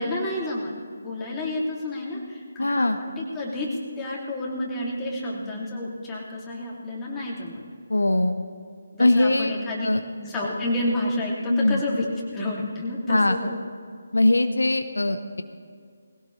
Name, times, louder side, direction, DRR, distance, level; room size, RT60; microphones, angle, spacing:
voice 1, 0.0-7.6 8.9-9.9 10.2-12.1 12.3-13.5, left 1 dB, 10° left, -5 dB, 2.6 m, -30 dB
voice 2, 2.6-3.0 7.9-8.4 9.0-9.5 9.8-10.0 11.5-11.8 13.1-13.4 14.1-15.4, left 2 dB, 80° left, 8 dB, 0.8 m, -21 dB
20.0 x 17.0 x 3.3 m, 2.2 s
figure-of-eight pair, 150°, 0 cm